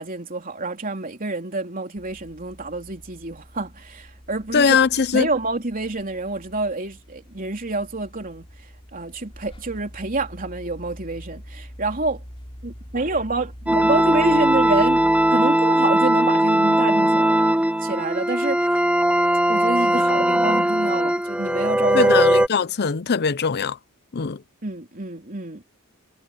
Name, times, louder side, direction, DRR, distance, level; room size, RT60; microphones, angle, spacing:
voice 1, 0.0-4.8 5.1-12.2 12.6-18.7 19.5-22.1 24.6-25.6, right 2 dB, 40° right, 3.4 m, -28 dB
sound 1, 2.0-15.3, equal, 25° left, 4.5 m, -44 dB
voice 2, 4.5-5.3 21.9-23.8 24.1-24.4, left 6 dB, 45° left, 0.6 m, -20 dB
sound 2, 13.7-22.5, right 1 dB, 5° right, 1.1 m, -19 dB
head